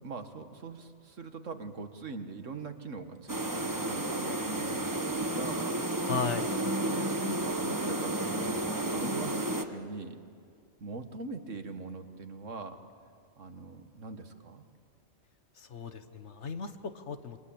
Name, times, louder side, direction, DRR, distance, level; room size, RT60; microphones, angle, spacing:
voice 1, 0.0-5.8 6.8-10.2 10.8-12.8 13.4-14.6, right 4 dB, 80° right, 7 dB, 1.9 m, -42 dB
sound 1, 3.3-9.7, right 1 dB, 15° right, 1.2 m, -32 dB
voice 2, 6.1-6.5 15.6-17.4, left 5 dB, 65° left, 9 dB, 1.6 m, -36 dB
28.0 x 23.5 x 8.7 m, 2.3 s
omnidirectional pair, 1.3 m